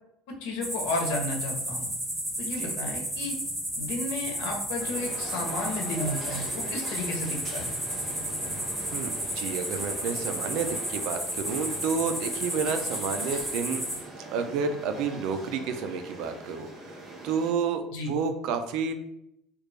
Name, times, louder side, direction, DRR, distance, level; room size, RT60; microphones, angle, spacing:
voice 1, 0.3-1.9 2.4-3.4 3.8-7.7 17.9-18.1, left 2 dB, 90° left, 1 dB, 0.9 m, -33 dB
sound 1, 0.6-14.0, right 1 dB, 10° right, 1.4 m, -33 dB
sound 2, 4.8-17.5, right 1 dB, 30° right, 1.1 m, -42 dB
voice 2, 8.9-13.8 14.3-17.0 17.2-17.8 18.1-18.9, right 5 dB, 70° right, 7 dB, 0.5 m, -30 dB
3.3 x 2.4 x 3.3 m, 0.77 s
cardioid pair, 140°, 0 cm